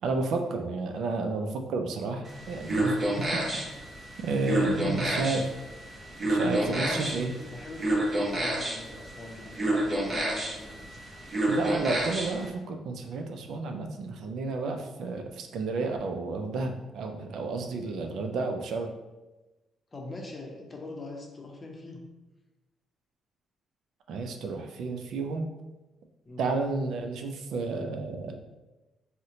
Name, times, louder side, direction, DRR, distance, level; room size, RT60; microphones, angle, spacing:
voice 1, 0.0-3.8 4.2-5.5 6.3-7.3 11.5-18.9 24.1-25.5 26.4-28.4, right 3 dB, 75° right, 4 dB, 0.4 m, -31 dB
sound 1, 2.3-12.5, right 1 dB, 35° right, 0.7 m, -30 dB
voice 2, 6.8-11.0 19.9-22.1 26.3-26.5, left 2 dB, 30° left, 1 dB, 0.6 m, -43 dB
2.7 x 2.1 x 3.7 m, 1.1 s
cardioid pair, 90°, 0 cm